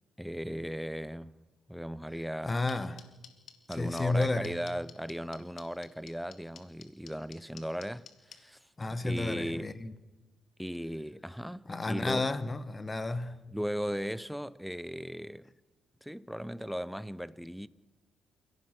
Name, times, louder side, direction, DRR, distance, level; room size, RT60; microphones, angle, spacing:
voice 1, 0.2-1.4 1.7-2.6 3.7-8.6 9.0-9.7 10.6-12.3 13.5-15.5 16.0-17.7, equal, ahead, 0.7 m, -37 dB
voice 2, 2.4-3.0 3.7-4.6 8.8-9.9 11.6-13.4, left 2 dB, 25° left, 1.3 m, -32 dB
sound 1, 2.7-8.4, left 8 dB, 70° left, 2.2 m, -49 dB
28.5 x 16.5 x 6.1 m
cardioid pair, 90°, 0 cm